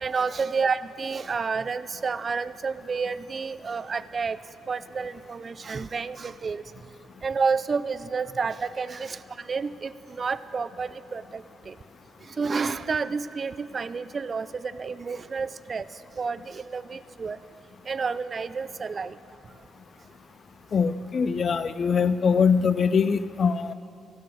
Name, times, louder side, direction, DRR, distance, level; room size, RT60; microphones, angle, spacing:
voice 1, 0.0-4.4 4.7-6.6 7.2-11.8 12.2-15.9 16.2-17.4 17.9-19.2, right 5 dB, 40° right, 15 dB, 0.3 m, -30 dB
voice 2, 20.7-23.7, left 6 dB, 45° left, 14 dB, 0.4 m, -23 dB
15.5 x 6.1 x 6.1 m, 2.8 s
cardioid pair, 90°, 0 cm